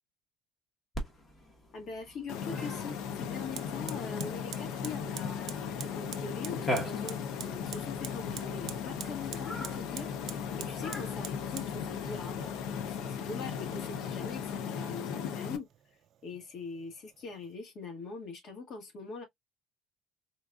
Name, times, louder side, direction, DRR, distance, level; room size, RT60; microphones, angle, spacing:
Cat, 0.9-14.6, equal, 30° left, 1.1 m, -44 dB
voice 1, 1.7-15.7 16.2-19.2, left 4 dB, 50° left, 1.5 m, -43 dB
sound 1, 2.3-15.6, left 7 dB, 80° left, 0.5 m, -37 dB
Fire, 3.6-17.6, right 11 dB, 55° right, 0.4 m, -48 dB
3.9 x 2.4 x 2.3 m
cardioid pair, 145°, 0 cm